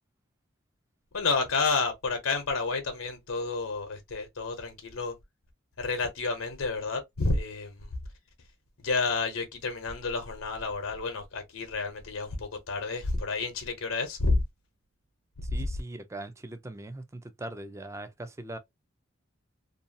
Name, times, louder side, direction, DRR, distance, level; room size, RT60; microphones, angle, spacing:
voice 1, 1.1-5.1 5.8-7.9 8.8-14.4, left 3 dB, 90° left, 0.8 m, -30 dB
voice 2, 15.4-18.6, right 1 dB, 15° right, 0.4 m, -40 dB
2.6 x 2.3 x 2.6 m
head